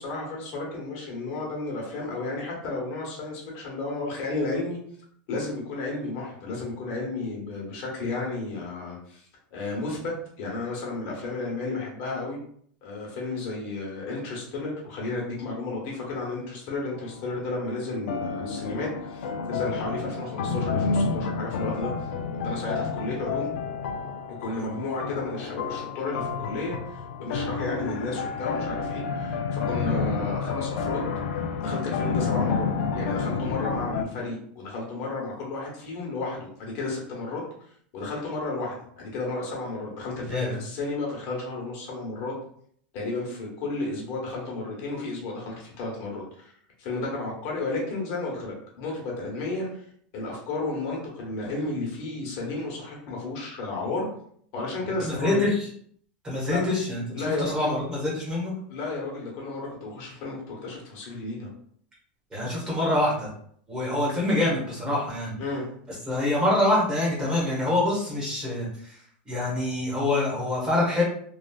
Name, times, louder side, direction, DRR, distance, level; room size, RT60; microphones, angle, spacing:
voice 1, 0.0-4.8 5.3-12.4 12.8-21.9 22.4-23.5 24.3-31.1 31.6-37.4 37.9-42.3 42.9-46.5 46.8-49.8 50.1-54.1 54.5-55.4 56.4-56.6 57.1-57.8 58.7-61.5 65.4-65.6, left 3 dB, 50° left, -2 dB, 1.0 m, -32 dB
sound 1, 16.9-17.4 18.1-34.0, left 5 dB, 80° left, 0.3 m, -30 dB
voice 2, 40.3-40.6 55.0-55.7 56.2-58.5 62.3-63.3 63.7-65.4 65.9-69.0 69.2-71.0, left 1 dB, 15° right, -6 dB, 1.2 m, -26 dB
3.1 x 2.3 x 2.3 m, 0.63 s
supercardioid pair, 145°, 6 cm